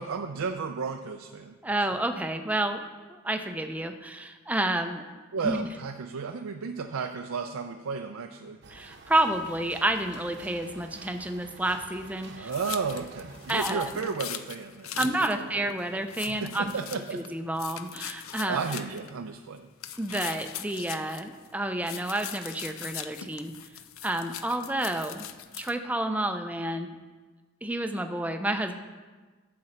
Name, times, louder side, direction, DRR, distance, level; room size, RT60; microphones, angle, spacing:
voice 1, 0.0-1.5 5.3-8.6 12.3-15.1 16.2-17.2 18.5-19.7, right 5 dB, 80° right, 6 dB, 0.5 m, -33 dB
voice 2, 1.6-5.0 5.4-5.7 8.7-12.5 13.5-13.9 15.0-16.7 17.1-18.6 20.0-23.5 24.0-25.3 25.6-27.0 27.6-28.7, right 1 dB, 5° right, 7 dB, 0.5 m, -30 dB
sound 1, 8.6-13.9, right 3 dB, 55° right, 0.9 m, -49 dB
sound 2, 12.5-15.4 15.7-15.8 16.1-17.3 17.6-19.1 19.8-21.5 21.8-25.7, left 11 dB, 75° left, 0.5 m, -40 dB
12.0 x 7.6 x 4.3 m, 1.4 s
head